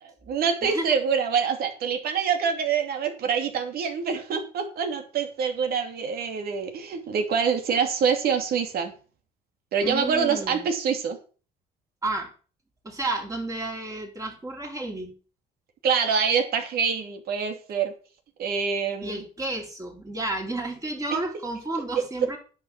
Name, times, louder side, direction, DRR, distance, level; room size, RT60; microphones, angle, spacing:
voice 1, 0.0-8.9 9.7-11.2 15.8-17.9 18.4-19.3 22.2-22.4, right 6 dB, 65° right, 6 dB, 2.7 m, -25 dB
voice 2, 0.6-0.9 9.8-10.6 12.0-12.3 12.8-15.1 19.0-22.4, right 2 dB, 20° right, 1 dB, 3.9 m, -31 dB
10.5 x 6.0 x 7.2 m, 0.37 s
cardioid pair, 110°, 17 cm